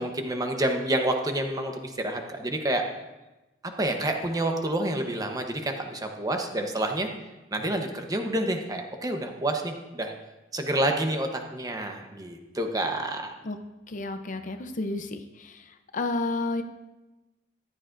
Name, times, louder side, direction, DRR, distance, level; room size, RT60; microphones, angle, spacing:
voice 1, 0.0-2.8 3.8-7.1 7.5-10.1 10.5-13.3, right 1 dB, 20° right, 4 dB, 1.0 m, -28 dB
voice 2, 13.9-16.6, left 2 dB, 45° left, 7 dB, 0.7 m, -31 dB
14.5 x 11.0 x 2.6 m, 1.1 s
head